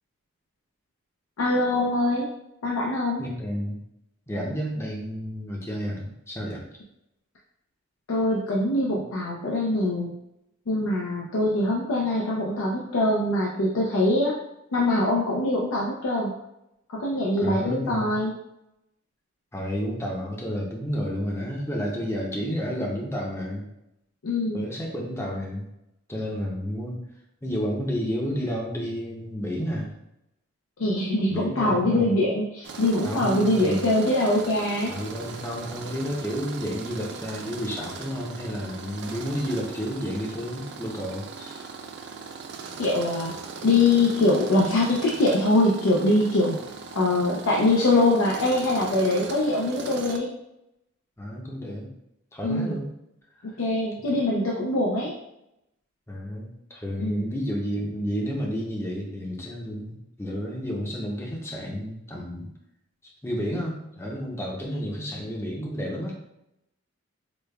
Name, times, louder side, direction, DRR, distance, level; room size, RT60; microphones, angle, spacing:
voice 1, 1.4-2.3 2.6-3.2 8.1-10.1 10.7-14.3 14.7-16.3 16.9-18.3 24.2-24.6 30.8-34.9 42.8-43.4 43.6-46.6 47.0-50.3 52.4-52.8 53.6-55.1 57.0-57.2, left 2 dB, 85° left, -3 dB, 0.5 m, -23 dB
voice 2, 3.2-3.8 4.3-6.6 17.4-18.1 19.5-23.7 24.5-25.7 26.1-27.0 27.4-29.9 31.3-32.2 33.0-33.9 34.9-41.8 51.2-51.9 52.3-52.9 53.4-53.5 56.1-62.5 63.2-66.1, equal, 15° left, -2 dB, 0.5 m, -31 dB
Tools, 32.6-50.2, right 5 dB, 55° right, 0.3 m, -39 dB
4.9 x 2.2 x 2.2 m, 0.85 s
head